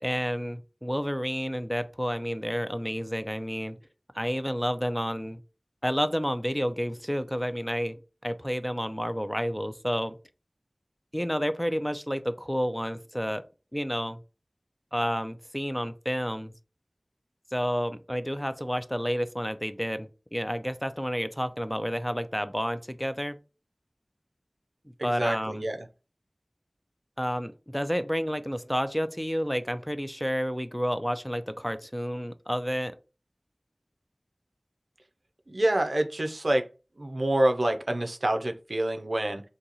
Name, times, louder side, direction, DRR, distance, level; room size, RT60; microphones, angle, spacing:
voice 1, 0.0-3.8 4.1-5.4 5.8-10.2 11.1-13.4 13.7-14.2 14.9-16.5 17.5-23.4 25.0-25.7 27.2-33.0, equal, 5° left, 0.3 m, -30 dB
voice 2, 25.0-25.8 35.5-36.6 37.0-39.4, right 1 dB, 85° right, 0.4 m, -27 dB
2.8 x 2.7 x 3.9 m
wide cardioid pair, 45°, 0 cm